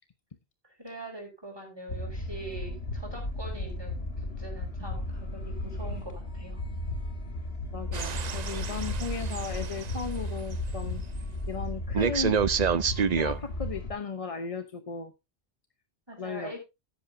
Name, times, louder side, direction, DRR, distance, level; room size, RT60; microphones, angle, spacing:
voice 1, 0.8-4.1 4.4-6.6 16.1-16.6, right 2 dB, 20° right, 2 dB, 5.1 m, -43 dB
sound 1, 1.9-13.9, left 1 dB, 70° left, 2.0 m, -35 dB
voice 2, 7.7-11.0 11.5-12.4 13.1-15.1 16.2-16.5, left 5 dB, 35° left, 9 dB, 0.8 m, -36 dB
sound 2, 7.9-10.0 12.0-13.4, right 7 dB, 45° right, 0.7 m, -28 dB
13.5 x 10.5 x 2.7 m, 0.24 s
omnidirectional pair, 1.1 m